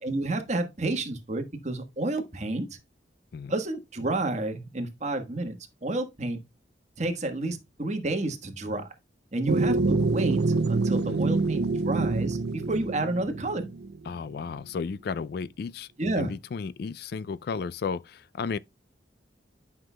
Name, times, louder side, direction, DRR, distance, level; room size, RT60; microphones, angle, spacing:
voice 1, 0.0-2.8 3.5-6.4 7.0-8.9 9.3-10.4 10.7-13.7 16.0-16.3, right 2 dB, 40° right, 1.4 m, -30 dB
sound 1, 9.5-14.1, right 3 dB, 65° right, 0.5 m, -26 dB
voice 2, 11.1-11.4 14.1-15.9 16.1-18.6, left 5 dB, 60° left, 0.3 m, -33 dB
10.5 x 5.8 x 2.2 m
head